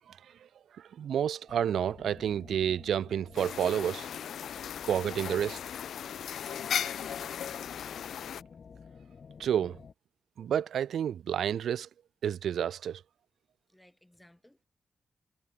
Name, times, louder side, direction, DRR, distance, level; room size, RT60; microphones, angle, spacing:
voice 1, 0.8-4.1 4.9-5.6 9.4-9.8 10.4-11.9 12.2-13.0, right 9 dB, 85° right, 0.4 m, -30 dB
sound 1, 1.5-9.9, left 6 dB, 50° left, 2.7 m, -51 dB
sound 2, 3.4-8.4, left 9 dB, 85° left, 0.9 m, -37 dB
voice 2, 6.1-8.1 13.7-14.6, left 1 dB, 5° left, 7.3 m, -58 dB
cardioid pair, 100°, 0 cm